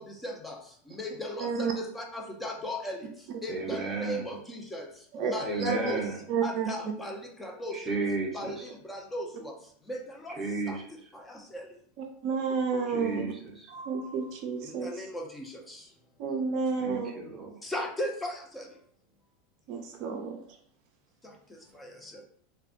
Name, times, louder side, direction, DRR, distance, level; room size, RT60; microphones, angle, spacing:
voice 1, 0.0-3.1 3.4-8.0 8.3-9.5 9.9-10.4 10.7-10.8 11.1-11.7 14.6-15.9 17.6-18.7 21.2-22.2, left 1 dB, 15° left, 1 dB, 0.5 m, -38 dB
voice 2, 1.4-1.7 5.1-5.3 5.6-5.8 6.3-6.7 12.2-13.2 13.7-14.9 16.2-17.1 19.7-20.4, right 5 dB, 55° right, 3 dB, 0.4 m, -30 dB
voice 3, 3.5-4.4 5.4-6.2 7.7-8.6 10.4-10.8 12.9-13.7 16.8-17.5, right 3 dB, 20° right, -2 dB, 0.7 m, -33 dB
2.3 x 2.1 x 2.7 m, 0.62 s
hypercardioid pair, 95°, 0 cm